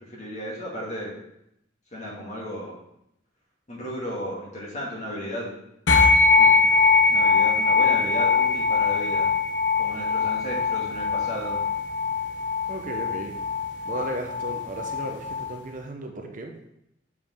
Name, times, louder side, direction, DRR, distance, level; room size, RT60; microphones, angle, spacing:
voice 1, 0.1-1.1 1.9-2.8 3.7-5.5 6.4-9.3 9.8-11.6, equal, 40° left, -4 dB, 2.1 m, -34 dB
sound 1, 5.9-15.6, left 4 dB, 75° left, 1.0 m, -22 dB
voice 2, 12.7-13.4 13.8-16.8, right 1 dB, 45° right, 3 dB, 0.8 m, -35 dB
7.2 x 4.9 x 3.6 m, 0.79 s
head